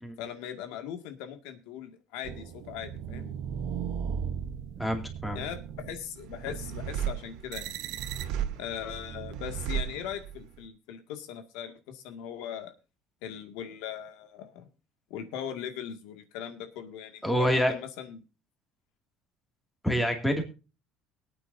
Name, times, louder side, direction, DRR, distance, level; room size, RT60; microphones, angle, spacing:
voice 1, 0.2-3.3 5.3-5.6 5.9-7.8 8.5-12.7 13.2-14.7 15.1-18.2, left 9 dB, 90° left, 7 dB, 2.0 m, -39 dB
sound 1, 2.2-10.6, right 8 dB, 70° right, 1.0 m, -36 dB
voice 2, 4.8-5.4 17.2-17.7 19.8-20.4, equal, 5° left, 4 dB, 2.3 m, -26 dB
22.5 x 9.1 x 2.7 m, 0.33 s
cardioid pair, 160°, 0 cm